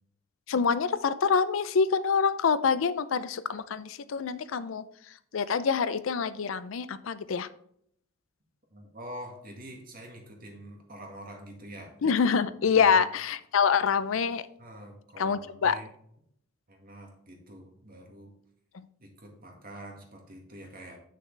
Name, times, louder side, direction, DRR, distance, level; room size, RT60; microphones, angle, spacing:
voice 1, 0.5-4.8 5.3-7.5 12.0-14.5 15.2-15.8, left 6 dB, 70° left, 14 dB, 0.5 m, -26 dB
voice 2, 8.7-12.0 12.7-13.0 14.6-15.9 16.7-18.3 19.0-21.0, right 1 dB, 45° right, 2 dB, 1.9 m, -45 dB
8.7 x 6.4 x 3.3 m, 0.68 s
head